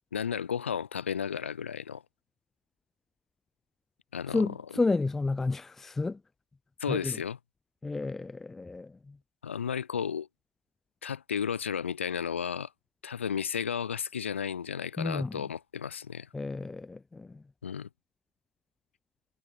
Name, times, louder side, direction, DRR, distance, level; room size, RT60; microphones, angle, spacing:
voice 1, 0.1-2.0 4.1-4.4 6.8-7.4 9.4-10.3 11.0-12.7 13.0-16.3 17.6-17.9, left 7 dB, 60° left, 0.5 m, -33 dB
voice 2, 4.3-6.2 6.9-7.2 7.8-9.2 15.0-15.5 16.3-17.4, left 3 dB, 5° left, 0.5 m, -31 dB
figure-of-eight pair, 135°, 7 cm